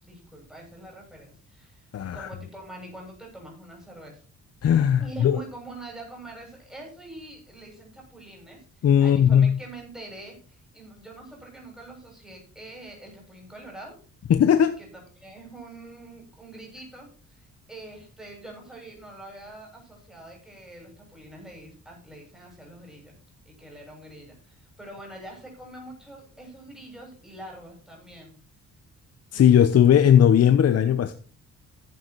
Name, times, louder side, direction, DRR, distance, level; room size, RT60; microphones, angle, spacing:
voice 1, 0.0-4.2 5.0-14.0 14.8-14.9 15.2-23.1 23.5-28.3 29.3-29.5, right 1 dB, ahead, -1 dB, 7.1 m, -44 dB
voice 2, 1.9-2.3 4.6-5.4 8.8-9.6 14.3-14.8 29.3-31.1, left 9 dB, 55° left, 10 dB, 0.9 m, -18 dB
12.0 x 8.4 x 4.7 m, 0.39 s
cardioid pair, 90°, 30 cm